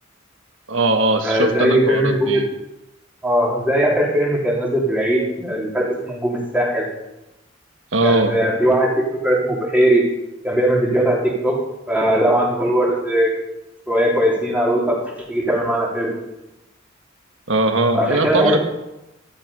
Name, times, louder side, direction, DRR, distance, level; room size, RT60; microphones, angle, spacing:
voice 1, 0.7-2.5 7.9-8.4 17.5-18.6, right 2 dB, 65° right, 6 dB, 1.6 m, -20 dB
voice 2, 1.2-2.4 3.2-6.9 8.0-10.0 10.4-11.6 11.9-13.3 13.9-15.0 15.3-16.1 17.9-18.6, right 1 dB, 5° right, -3 dB, 3.0 m, -19 dB
13.0 x 11.0 x 5.4 m, 0.95 s
head